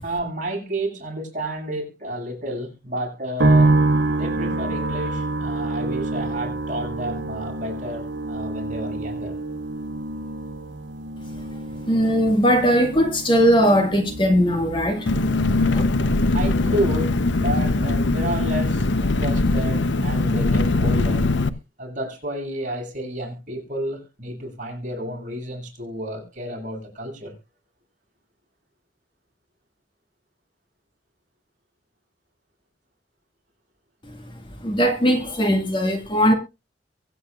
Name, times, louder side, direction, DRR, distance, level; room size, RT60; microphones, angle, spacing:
voice 1, 0.0-3.8 4.1-9.4 16.3-21.3 21.8-27.3, right 1 dB, 45° right, 7.2 m, -31 dB
sound 1, 3.4-18.6 18.9-19.8, right 2 dB, 80° right, 1.3 m, -27 dB
voice 2, 11.9-15.1 15.7-15.8 34.6-36.3, equal, 25° left, 1.9 m, -19 dB
Engine, 15.1-21.5, left 2 dB, 75° left, 0.9 m, -21 dB
23.5 x 8.7 x 2.5 m
head